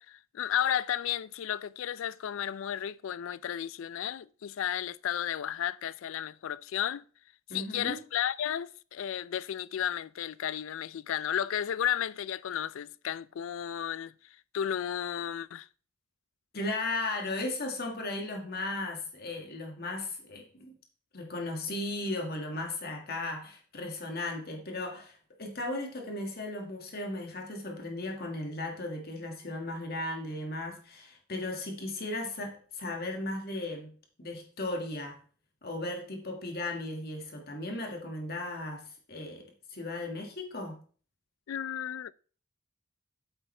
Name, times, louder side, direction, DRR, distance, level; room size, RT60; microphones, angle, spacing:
voice 1, 0.0-7.0 7.5-14.1 14.5-15.7 41.5-42.1, left 10 dB, 65° left, 0.3 m, -33 dB
voice 2, 7.5-8.0 16.5-20.7 21.1-33.9 34.2-35.2 35.6-40.8, left 2 dB, 45° left, 1.9 m, -36 dB
8.7 x 7.9 x 3.3 m
head